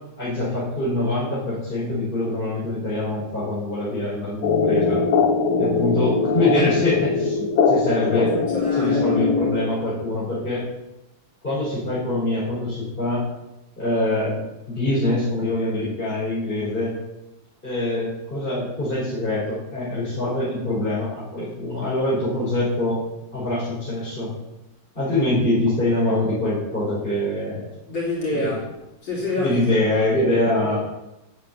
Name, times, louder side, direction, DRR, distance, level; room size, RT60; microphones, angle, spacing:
voice 1, 0.2-5.0 5.6-8.3 8.8-10.6 11.4-13.2 13.8-14.4 14.7-16.9 17.6-23.0 23.3-24.3 25.0-27.6 28.3-28.5 29.4-30.8, left 1 dB, 25° left, -10 dB, 5.4 m, -24 dB
sound 1, 4.4-9.9, left 5 dB, 75° left, 2.1 m, -21 dB
voice 2, 8.2-9.1 27.9-28.6 29.0-30.8, left 1 dB, 60° left, -5 dB, 4.2 m, -28 dB
9.6 x 8.7 x 8.9 m, 0.95 s
omnidirectional pair, 2.3 m